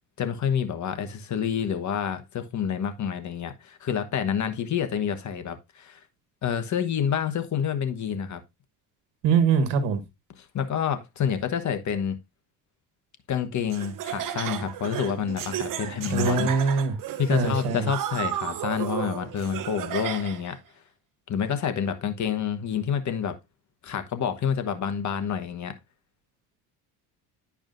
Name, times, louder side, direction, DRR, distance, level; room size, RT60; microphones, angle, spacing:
voice 1, 0.2-6.0 6.4-8.4 10.4-12.2 13.3-16.8 17.2-20.6 21.3-23.4 23.8-25.7, left 8 dB, 45° left, 1.2 m, -28 dB
voice 2, 9.2-10.0 16.1-16.9 17.3-17.9, right 5 dB, 75° right, 1.4 m, -23 dB
Laughter, 13.7-20.5, right 11 dB, 50° right, 0.9 m, -33 dB
10.5 x 4.8 x 2.5 m
supercardioid pair, 90°, 41 cm